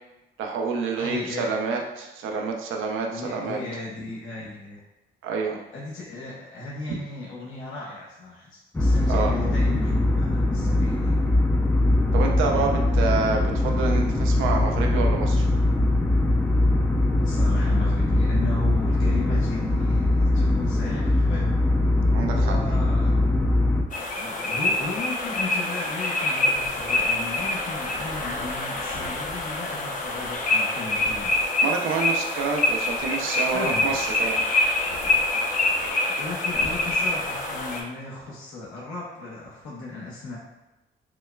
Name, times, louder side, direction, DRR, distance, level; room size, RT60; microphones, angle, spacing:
voice 1, 0.4-3.6 5.2-5.6 9.1-9.3 12.1-15.4 22.1-22.6 31.6-34.4, right 4 dB, 85° right, 1 dB, 0.5 m, -27 dB
voice 2, 1.0-1.5 3.1-4.8 5.7-11.2 17.2-21.6 22.3-23.1 24.2-31.4 33.5-33.9 36.1-40.4, left 3 dB, 75° left, -6 dB, 0.9 m, -36 dB
sound 1, 8.7-23.8, left 2 dB, 10° left, 0.4 m, -21 dB
sound 2, 23.9-37.8, left 2 dB, 40° left, 0.7 m, -26 dB
6.0 x 2.2 x 2.2 m, 1.0 s
cardioid pair, 90°, 20 cm